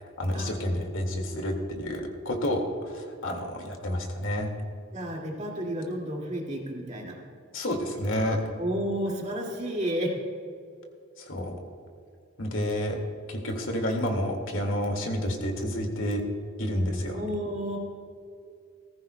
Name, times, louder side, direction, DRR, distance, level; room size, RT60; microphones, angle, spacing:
voice 1, 0.0-4.5 7.5-8.4 11.2-11.6 12.4-13.0 13.3-16.2 16.6-17.2, equal, 75° left, 3 dB, 2.0 m, -29 dB
voice 2, 4.9-7.2 8.6-10.2 17.1-17.8, equal, 35° right, -1 dB, 2.1 m, -31 dB
19.5 x 15.0 x 2.2 m, 2.3 s
head